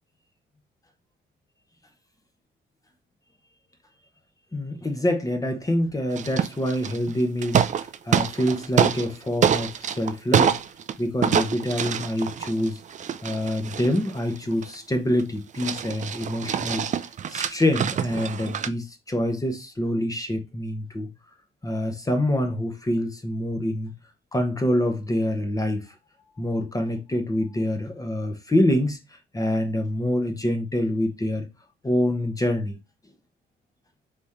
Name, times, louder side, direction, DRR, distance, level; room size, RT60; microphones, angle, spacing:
voice 1, 4.5-10.6 11.0-12.8 13.2-16.9 17.3-21.1 21.6-23.9 24.3-25.9 26.4-29.0 29.3-31.5 31.8-32.8, left 1 dB, 15° left, 0.9 m, -26 dB
sound 1, 6.2-7.1 7.4-9.1 9.4-10.9 11.2-14.7 15.2-15.3 15.5-18.7, right 8 dB, 40° right, 0.4 m, -25 dB
3.6 x 3.2 x 4.2 m
cardioid pair, 90°, 20 cm